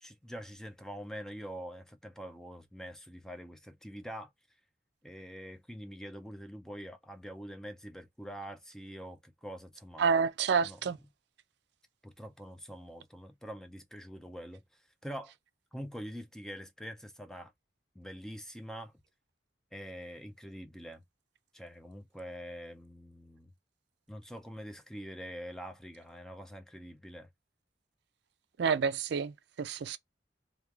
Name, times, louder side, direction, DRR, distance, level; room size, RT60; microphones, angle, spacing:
voice 1, 0.0-4.3 5.0-10.1 10.6-10.8 12.0-15.3 15.7-17.5 18.0-18.9 19.7-21.0 21.5-23.5 24.1-27.3, equal, 5° left, 0.4 m, -45 dB
voice 2, 10.0-11.0 28.6-30.0, right 6 dB, 65° right, 0.4 m, -29 dB
3.0 x 2.3 x 2.3 m
head